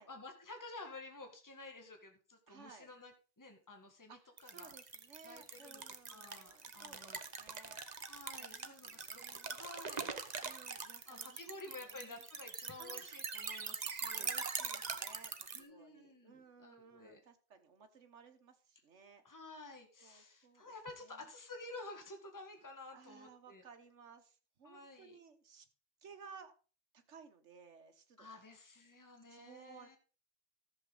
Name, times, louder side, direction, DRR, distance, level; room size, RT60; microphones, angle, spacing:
voice 1, 0.0-4.7 5.2-5.8 6.1-7.2 8.1-10.5 11.1-14.3 15.5-17.2 19.2-23.6 24.6-25.2 28.2-30.0, left 2 dB, 15° left, 4 dB, 1.6 m, -52 dB
voice 2, 2.5-2.9 4.1-7.8 8.4-9.5 10.4-12.2 12.8-13.2 14.1-19.2 20.0-21.3 22.9-25.7 26.0-26.5 26.9-28.4 28.9-29.9, right 6 dB, 80° right, 7 dB, 1.6 m, -58 dB
sound 1, 4.4-15.6, right 5 dB, 40° right, 0.9 m, -43 dB
14.0 x 7.1 x 3.9 m, 0.36 s
omnidirectional pair, 1.2 m